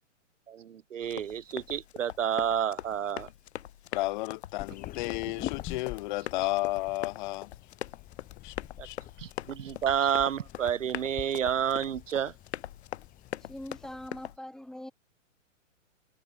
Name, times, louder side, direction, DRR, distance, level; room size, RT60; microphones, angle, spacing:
voice 1, 0.5-3.3 8.8-8.9 9.2-12.3, right 9 dB, 70° right, 4.4 m, -30 dB
Run, 1.0-14.4, left 11 dB, 55° left, 5.2 m, -42 dB
voice 2, 3.9-7.5 8.4-8.5 8.8-9.0, left 20 dB, 40° left, 3.2 m, -32 dB
sound 1, 4.6-14.1, left 14 dB, 20° left, 7.0 m, -46 dB
voice 3, 13.4-14.9, left 1 dB, ahead, 2.8 m, -42 dB
hypercardioid pair, 150°, 39 cm